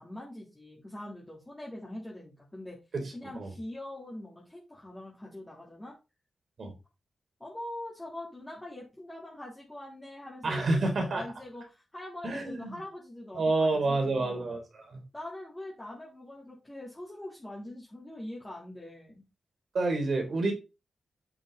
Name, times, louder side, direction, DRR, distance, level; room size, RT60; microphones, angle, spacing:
voice 1, 0.0-2.8 3.1-5.9 7.4-14.5 15.1-19.2, left 1 dB, 15° left, 3.2 m, -43 dB
voice 2, 2.9-3.5 6.6-6.7 10.4-11.2 12.2-12.7 13.4-15.0 19.7-20.5, right 2 dB, 55° right, 3.6 m, -29 dB
8.4 x 6.9 x 3.9 m
wide cardioid pair, 110°, 0 cm